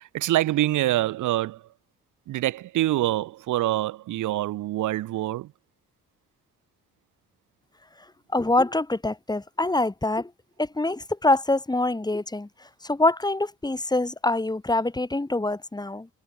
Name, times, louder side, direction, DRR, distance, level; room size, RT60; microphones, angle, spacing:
voice 1, 0.1-1.6 2.3-5.5, right 15 dB, 80° right, 1.4 m, -25 dB
voice 2, 8.3-10.3 10.6-12.5 12.8-16.1, left 2 dB, 15° left, 3.1 m, -25 dB
cardioid pair, 90°, 30 cm